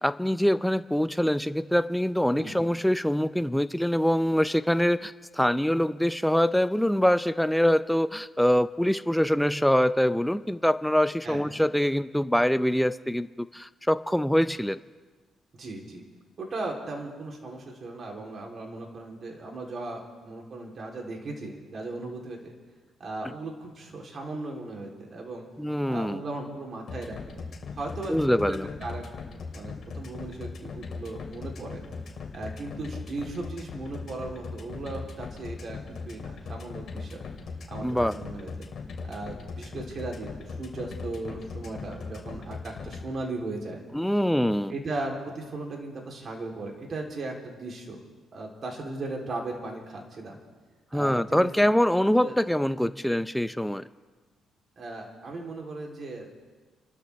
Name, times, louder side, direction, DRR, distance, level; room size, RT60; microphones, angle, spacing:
voice 1, 0.0-14.8 25.6-26.2 28.1-28.7 37.8-38.1 43.9-44.7 50.9-53.8, equal, 5° left, 12 dB, 0.5 m, -24 dB
voice 2, 15.5-16.0 16.4-22.5 23.0-25.5 25.9-27.4 27.8-29.0 29.5-31.8 32.3-35.8 36.1-37.2 37.7-38.5 39.1-43.8 44.7-48.0 48.3-50.4 50.9-51.5 52.2-52.4 54.8-56.3, right 2 dB, 50° right, 0 dB, 3.5 m, -37 dB
sound 1, 26.9-43.0, left 4 dB, 55° left, 3.2 m, -38 dB
29.5 x 13.0 x 3.5 m, 1.4 s
cardioid pair, 90°, 0 cm